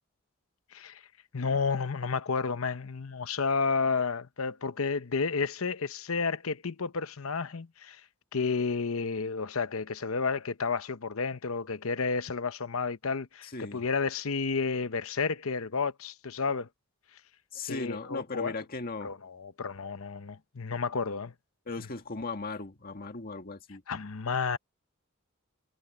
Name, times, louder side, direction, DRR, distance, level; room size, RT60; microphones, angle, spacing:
voice 1, 1.3-8.0 8.3-16.7 17.7-18.5 19.0-21.3 23.9-24.6, left 4 dB, 70° left, 0.9 m, -31 dB
voice 2, 13.4-13.9 17.5-19.1 21.7-23.8, left 3 dB, 45° left, 1.9 m, -37 dB
head